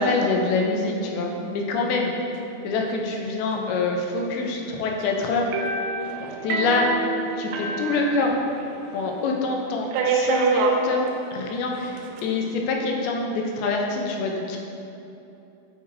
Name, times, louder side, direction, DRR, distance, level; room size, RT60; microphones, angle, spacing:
voice 1, 0.0-2.1 2.6-5.5 6.4-6.9 7.4-8.4 8.9-11.0 11.3-14.6, left 3 dB, 80° left, 0 dB, 2.5 m, -25 dB
sound 1, 5.5-8.7 9.0-9.1 9.9-10.8 11.7-12.2, right 4 dB, 85° right, 2.5 m, -26 dB
7.8 x 4.8 x 2.6 m, 2.8 s
omnidirectional pair, 4.4 m